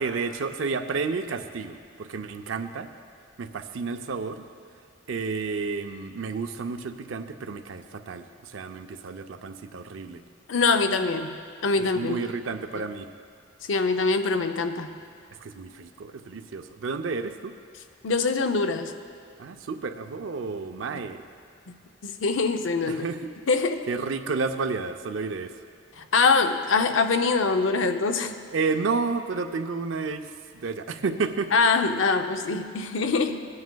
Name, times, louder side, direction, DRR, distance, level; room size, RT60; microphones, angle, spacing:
voice 1, 0.0-2.9 3.4-4.4 5.1-10.2 11.9-13.1 15.3-17.6 19.4-21.2 22.8-23.3 23.9-25.5 28.5-31.5, right 4 dB, 75° right, 8 dB, 0.5 m, -31 dB
voice 2, 10.5-12.2 13.7-14.9 18.0-18.9 22.0-23.0 23.5-23.9 26.0-28.4 31.5-33.4, left 4 dB, 70° left, 8 dB, 0.5 m, -24 dB
18.0 x 9.5 x 2.2 m, 2.2 s
head